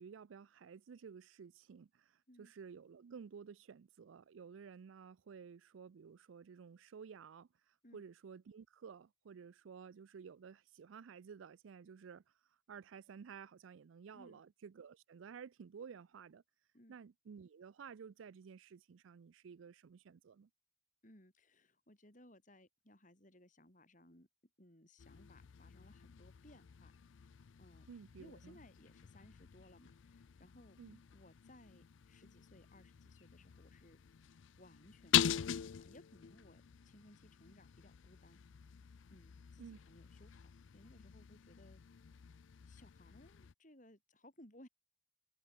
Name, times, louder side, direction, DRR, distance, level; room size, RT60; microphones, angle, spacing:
voice 1, 0.0-1.9 2.4-7.5 7.9-12.2 12.7-16.4 16.9-20.5 27.9-28.6 30.8-31.0 39.6-39.8, right 6 dB, 80° right, 0.4 m, -53 dB
voice 2, 21.0-24.3 24.6-26.9 27.6-27.9 28.2-30.8 31.1-34.0 34.6-38.4 39.1-40.4 40.7-41.8 42.7-44.7, left 1 dB, 40° left, 6.4 m, -62 dB
sound 1, 25.0-43.5, left 10 dB, 75° left, 0.4 m, -43 dB
head